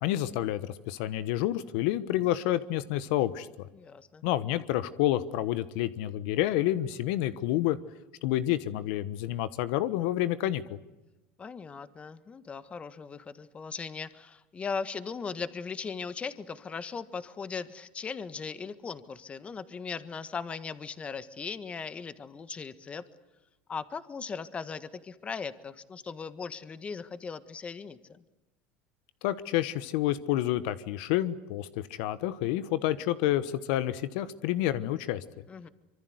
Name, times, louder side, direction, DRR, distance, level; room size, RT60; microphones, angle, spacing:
voice 1, 0.0-3.7 4.2-7.8 8.2-10.8 29.2-35.2, left 14 dB, 75° left, 14 dB, 1.2 m, -29 dB
voice 2, 3.8-4.2 11.4-23.0 23.7-28.0 35.5-35.7, left 5 dB, 25° left, 13 dB, 1.6 m, -38 dB
25.5 x 24.0 x 8.0 m, 1.0 s
supercardioid pair, 115°, 5 cm